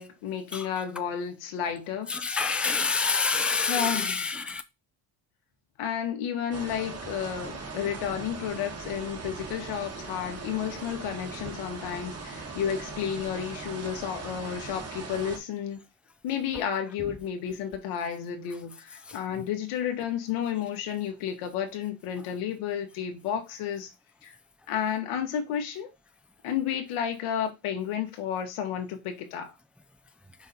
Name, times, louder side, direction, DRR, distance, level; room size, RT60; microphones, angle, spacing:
voice 1, 0.0-2.2 3.7-4.3 5.8-15.8 16.2-23.9 24.2-24.3 24.7-25.9 26.4-29.5, left 9 dB, 90° left, 1.7 m, -32 dB
voice 2, 2.1-4.6 19.1-19.2, left 5 dB, 5° right, 0.4 m, -27 dB
sound 1, 6.5-15.4, right 4 dB, 30° right, 1.6 m, -39 dB
5.8 x 4.1 x 4.3 m
cardioid pair, 115°, 48 cm